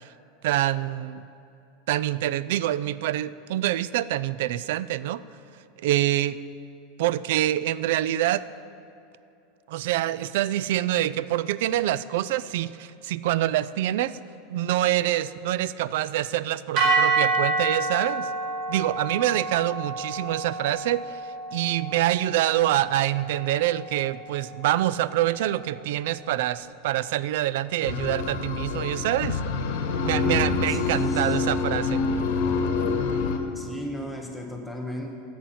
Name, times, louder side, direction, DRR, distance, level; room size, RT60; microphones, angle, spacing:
voice 1, 0.4-1.2 1.9-5.2 5.8-6.4 7.0-8.4 9.7-14.2 14.5-18.3 18.7-21.2 21.5-29.4 30.0-32.0, right 13 dB, 70° right, 17 dB, 0.3 m, -26 dB
sound 1, 16.8-25.0, right 3 dB, 45° right, 1.8 m, -29 dB
sound 2, 27.8-33.4, left 4 dB, 70° left, 1.1 m, -26 dB
voice 2, 30.7-31.5 33.5-35.1, equal, ahead, 1 dB, 0.9 m, -36 dB
16.5 x 7.5 x 4.2 m, 2.7 s
supercardioid pair, 150°, 0 cm